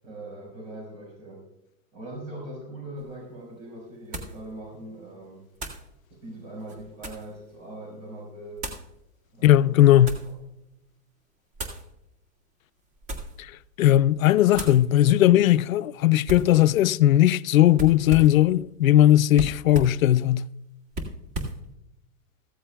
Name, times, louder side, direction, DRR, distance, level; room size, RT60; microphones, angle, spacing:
voice 1, 0.0-1.5 1.9-5.5 6.1-8.7 9.3-10.1, right 1 dB, 75° right, 5.0 m, -41 dB
sound 1, 3.0-3.1 4.1-4.4 5.6-5.9 6.6-7.3 8.6-8.9 9.6-10.3 11.5-11.9 12.9-13.4 13.8-14.1 14.5-14.8 16.3-16.6 17.7-18.4 19.3-20.0 20.9-21.6, right 1 dB, 30° right, 2.0 m, -35 dB
voice 2, 9.4-10.2 13.8-20.5, left 13 dB, 90° left, 0.5 m, -18 dB
15.0 x 14.0 x 2.3 m
hypercardioid pair, 145°, 40 cm